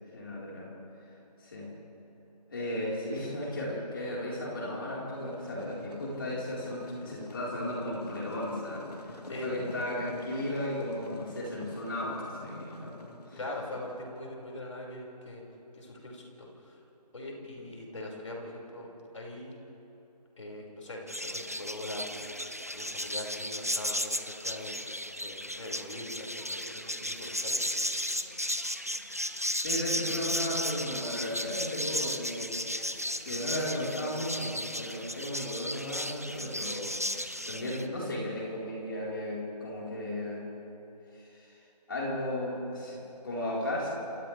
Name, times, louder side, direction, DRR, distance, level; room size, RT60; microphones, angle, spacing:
voice 1, 0.1-0.7 1.4-1.7 2.5-13.4 29.6-32.6 33.2-40.5 41.1-41.5 41.9-43.9, left 1 dB, 30° left, -5 dB, 4.2 m, -35 dB
sound 1, 5.2-14.3, left 2 dB, 70° left, 1.7 m, -48 dB
voice 2, 9.3-9.6 13.4-15.4 15.7-16.8 17.1-18.9 19.1-19.5 20.4-22.4 22.7-24.8 25.2-27.6, left 1 dB, 50° left, -2 dB, 5.2 m, -42 dB
sound 2, 21.1-37.9, equal, 20° right, 0.4 m, -35 dB
29.5 x 28.5 x 3.3 m, 3.0 s
figure-of-eight pair, 170°, 21 cm